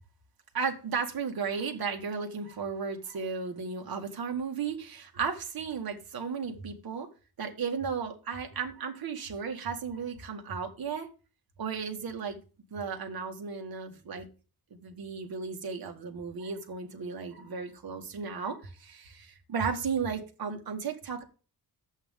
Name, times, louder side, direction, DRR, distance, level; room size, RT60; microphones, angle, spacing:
voice 1, 0.5-7.1 7.4-11.1 11.6-12.4 12.7-14.3 14.7-21.2, right 5 dB, 70° right, 2.0 m, -34 dB
11.0 x 8.2 x 3.7 m
wide cardioid pair, 140°, 38 cm